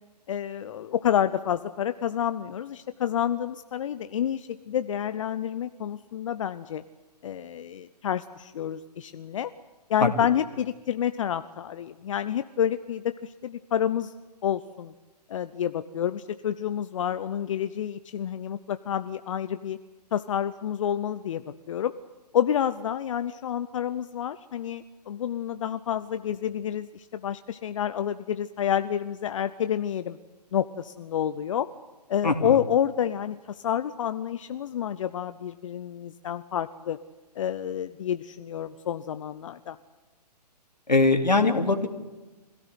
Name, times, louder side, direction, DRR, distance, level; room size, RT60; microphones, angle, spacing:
voice 1, 0.3-6.8 7.2-9.5 9.9-14.1 14.4-14.9 15.3-19.8 20.1-21.9 22.3-30.2 30.5-31.7 32.1-37.0 37.4-39.8, left 9 dB, 50° left, 12 dB, 1.0 m, -29 dB
voice 2, 32.2-32.6 40.9-41.9, left 3 dB, 85° left, 5 dB, 3.4 m, -21 dB
26.0 x 17.5 x 9.7 m, 1.2 s
figure-of-eight pair, 130°, 21 cm